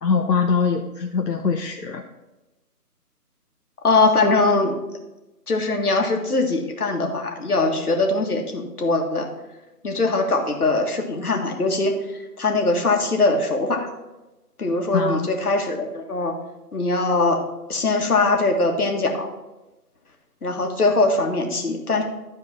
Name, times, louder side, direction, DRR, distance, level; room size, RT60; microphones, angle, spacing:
voice 1, 0.0-2.0 14.9-15.3, left 5 dB, 85° left, 2 dB, 1.0 m, -22 dB
voice 2, 3.8-4.8 5.5-9.3 9.8-11.9 12.4-13.9 14.6-16.3 16.7-17.4 17.7-19.3 20.4-22.0, left 3 dB, 65° left, 3 dB, 1.9 m, -21 dB
12.0 x 4.8 x 5.8 m, 1.0 s
figure-of-eight pair, 165°, 48 cm